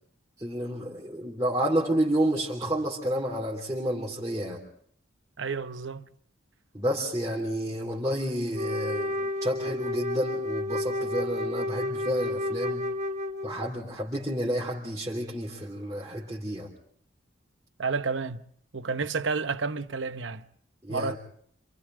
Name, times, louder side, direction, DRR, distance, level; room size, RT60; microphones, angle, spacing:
voice 1, 0.4-4.6 6.7-12.9 13.4-16.7 20.8-21.2, right 1 dB, 20° right, 3.1 m, -30 dB
voice 2, 5.4-6.1 17.8-18.5 18.7-20.4 20.9-21.2, right 4 dB, 70° right, 0.8 m, -30 dB
Wind instrument woodwind instrument, 8.5-13.7, left 1 dB, 35° right, 1.2 m, -31 dB
29.0 x 26.5 x 3.8 m
head